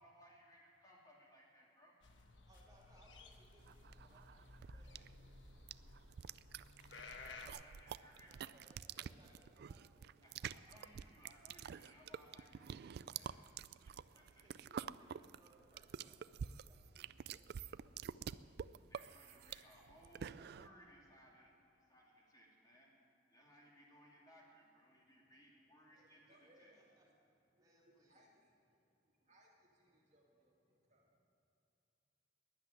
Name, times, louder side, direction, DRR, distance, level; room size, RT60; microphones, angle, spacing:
voice 1, 0.0-2.0 6.9-8.3 10.2-13.4 13.8-14.4 18.9-22.9 23.3-26.7, equal, 20° left, -3 dB, 2.7 m, -64 dB
sound 1, 2.0-7.5, left 3 dB, 85° left, 1.2 m, -56 dB
voice 2, 2.5-5.0 8.2-10.5 11.0-11.2 13.0-13.6 14.1-16.2 16.7-18.6 26.6-27.0 27.6-28.2, right 1 dB, 20° right, -3 dB, 3.3 m, -70 dB
sound 2, 3.7-20.7, right 8 dB, 60° right, 0.3 m, -49 dB
voice 3, 25.0-31.2, equal, 40° right, -2 dB, 2.2 m, -72 dB
12.0 x 10.5 x 10.0 m, 2.8 s
head